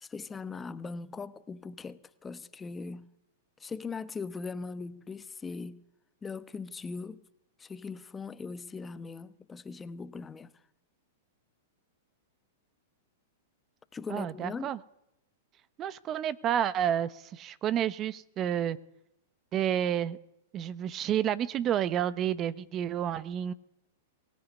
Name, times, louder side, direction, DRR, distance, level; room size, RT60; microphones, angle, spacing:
voice 1, 0.0-3.1 3.6-5.8 6.2-7.2 7.6-10.5 13.9-14.7, left 4 dB, 15° left, 1.2 m, -40 dB
voice 2, 14.1-14.8 15.8-18.8 19.5-20.2 20.5-23.5, right 10 dB, 35° right, 1.0 m, -30 dB
22.5 x 17.5 x 9.5 m
hypercardioid pair, 110°, 0 cm